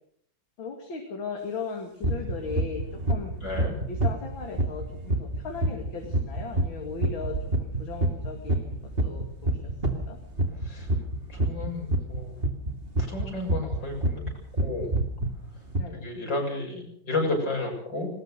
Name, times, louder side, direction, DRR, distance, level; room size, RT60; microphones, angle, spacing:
voice 1, 0.6-3.3 3.9-8.7 9.0-10.2 15.8-16.1, left 5 dB, 85° left, 2 dB, 3.1 m, -37 dB
sound 1, 2.0-14.3 14.6-15.3 15.7-15.8, right 1 dB, 30° right, 2.4 m, -26 dB
voice 2, 3.4-3.7 10.6-10.9 11.3-12.3 13.0-14.2 14.6-14.9 15.9-18.1, left 2 dB, 65° left, 0 dB, 7.7 m, -32 dB
sound 2, 6.0-12.3, right 3 dB, 45° left, 7.5 m, -47 dB
20.5 x 19.5 x 6.6 m, 0.62 s
omnidirectional pair, 2.1 m